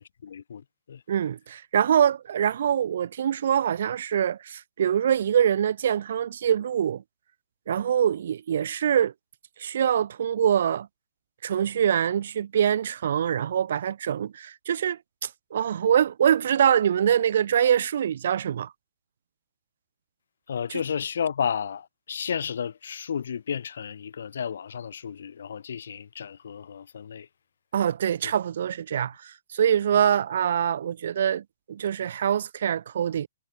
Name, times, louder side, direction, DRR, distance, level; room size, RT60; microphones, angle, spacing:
voice 1, 0.0-1.0 20.5-27.3 28.2-28.3 29.9-30.0, left 7 dB, 60° left, 3.5 m, -32 dB
voice 2, 1.1-7.0 7.7-9.1 9.6-10.9 11.4-18.7 27.7-33.3, right 9 dB, 45° right, 0.4 m, -24 dB
hypercardioid pair, 175°, 0 cm